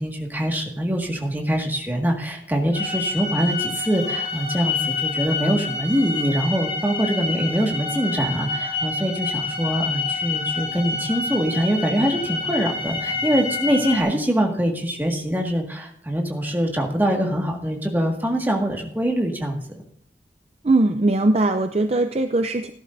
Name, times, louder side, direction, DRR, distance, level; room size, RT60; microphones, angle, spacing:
voice 1, 0.0-19.8, equal, 10° right, 1 dB, 1.8 m, -24 dB
sound 1, 2.7-14.0, left 4 dB, 30° left, 3.0 m, -28 dB
voice 2, 20.6-22.7, right 2 dB, 35° right, 7 dB, 0.5 m, -20 dB
17.5 x 11.0 x 2.6 m, 0.64 s
head